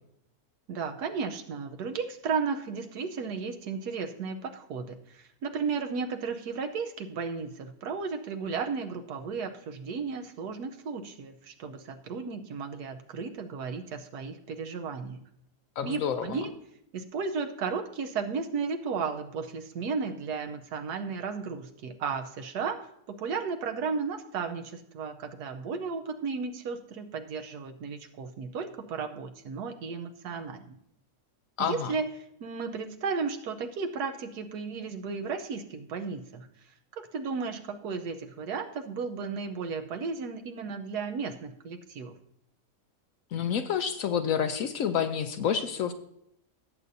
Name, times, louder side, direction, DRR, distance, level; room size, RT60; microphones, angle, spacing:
voice 1, 0.7-15.2 15.8-16.5 16.9-22.9 23.2-30.8 31.7-32.1 32.4-36.5 37.0-42.1, right 5 dB, 80° right, 7 dB, 1.4 m, -34 dB
voice 2, 15.8-16.4 31.6-31.9 43.3-45.9, left 8 dB, 65° left, 9 dB, 0.9 m, -29 dB
17.5 x 8.0 x 2.7 m, 0.75 s
omnidirectional pair, 1.7 m